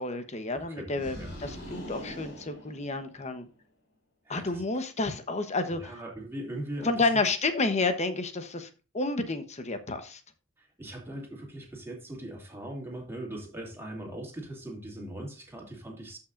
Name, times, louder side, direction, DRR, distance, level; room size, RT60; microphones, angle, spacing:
voice 1, 0.0-3.5 4.3-5.9 6.8-8.7 8.9-10.2, left 3 dB, 35° left, 1.1 m, -30 dB
voice 2, 0.5-1.3 4.2-4.6 5.7-7.2 10.6-16.2, right 1 dB, 10° right, 2.7 m, -40 dB
sound 1, 0.9-3.4, equal, 60° left, 4.2 m, -42 dB
13.5 x 5.8 x 2.6 m
head